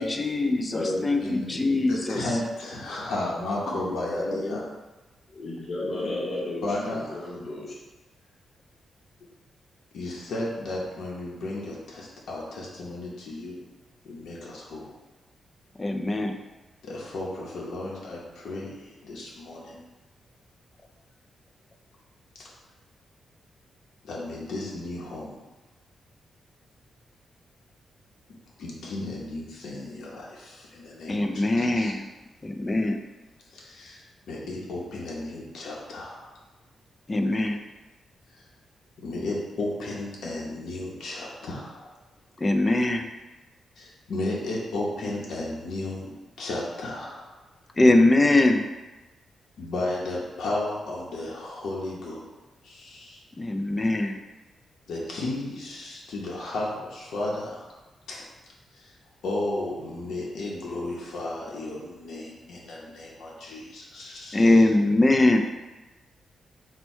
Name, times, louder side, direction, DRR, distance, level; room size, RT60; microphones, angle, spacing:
voice 1, 0.0-2.3 15.8-16.3 31.1-32.1 32.4-33.0 37.1-37.6 42.4-43.1 47.8-48.6 53.4-54.2 64.3-65.4, left 2 dB, 20° left, 5 dB, 0.3 m, -22 dB
voice 2, 0.7-2.1 3.6-4.6 5.3-7.7, left 2 dB, 35° left, -5 dB, 0.8 m, -33 dB
voice 3, 1.9-4.6 6.6-7.4 9.9-13.6 14.0-14.9 16.8-19.8 22.4-22.5 24.0-25.3 28.6-31.9 33.5-36.4 38.3-38.4 39.0-41.9 43.8-46.1 46.4-47.3 49.6-52.2 52.6-53.2 54.9-57.7 58.1-58.2 58.7-58.9 59.2-64.6, left 2 dB, 80° left, -4 dB, 0.8 m, -34 dB
4.4 x 2.2 x 4.3 m, 1.1 s
wide cardioid pair, 150°, 0 cm